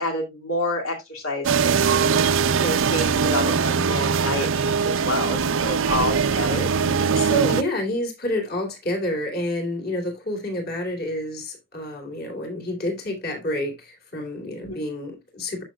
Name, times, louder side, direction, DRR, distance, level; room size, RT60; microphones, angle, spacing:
voice 1, 0.0-2.2 2.6-6.7 14.6-14.8, left 2 dB, 75° left, 2.2 m, -29 dB
sound 1, 1.4-7.6, right 6 dB, 65° right, 0.5 m, -21 dB
voice 2, 6.8-15.6, left 1 dB, 45° left, 2.9 m, -28 dB
12.5 x 6.3 x 2.2 m
head